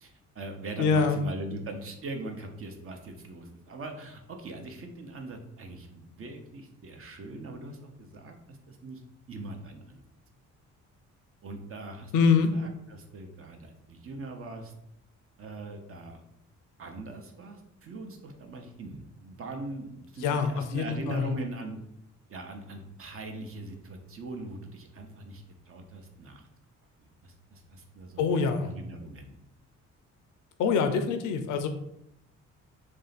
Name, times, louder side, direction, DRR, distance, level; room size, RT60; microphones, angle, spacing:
voice 1, 0.0-9.0 9.3-10.0 11.4-12.1 12.5-14.7 15.4-16.2 16.8-21.8 22.3-26.5 27.2-28.3 28.6-29.4, right 2 dB, 45° right, 4 dB, 0.7 m, -41 dB
voice 2, 0.8-1.2 12.1-12.5 20.2-21.3 28.2-28.7 30.6-31.7, left 5 dB, 90° left, 8 dB, 0.6 m, -25 dB
3.3 x 2.7 x 4.0 m, 0.79 s
cardioid pair, 90°, 30 cm